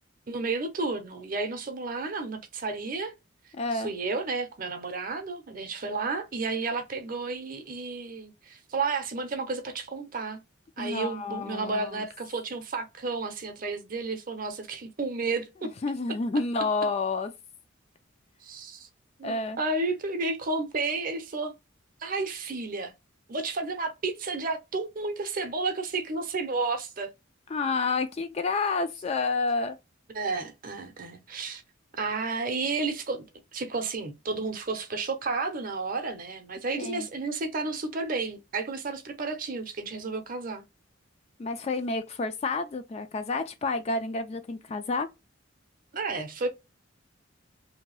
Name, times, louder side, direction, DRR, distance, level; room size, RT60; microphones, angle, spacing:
voice 1, 0.3-3.1 3.7-10.4 10.8-15.7 18.4-18.9 19.2-21.5 22.0-22.9 23.3-27.1 30.1-31.6 31.9-33.2 33.5-40.6 45.9-46.5, right 3 dB, 45° right, 0.6 m, -32 dB
voice 2, 3.5-3.9 10.8-12.0 15.8-17.3 19.2-19.6 27.5-29.8 36.8-37.1 41.4-45.1, left 3 dB, 30° left, 0.3 m, -29 dB
2.7 x 2.2 x 3.0 m
head